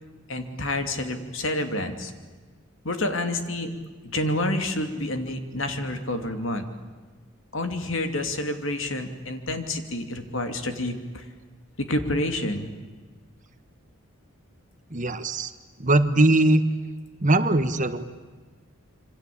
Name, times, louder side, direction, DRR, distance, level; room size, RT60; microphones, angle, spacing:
voice 1, 0.3-2.1 2.8-3.7 4.1-6.7 7.5-11.3 11.8-12.7, left 1 dB, 65° left, 7 dB, 2.8 m, -28 dB
voice 2, 14.9-15.5 15.8-16.6 17.2-18.0, right 2 dB, 35° right, 10 dB, 1.4 m, -20 dB
27.0 x 25.0 x 8.6 m, 1.4 s
head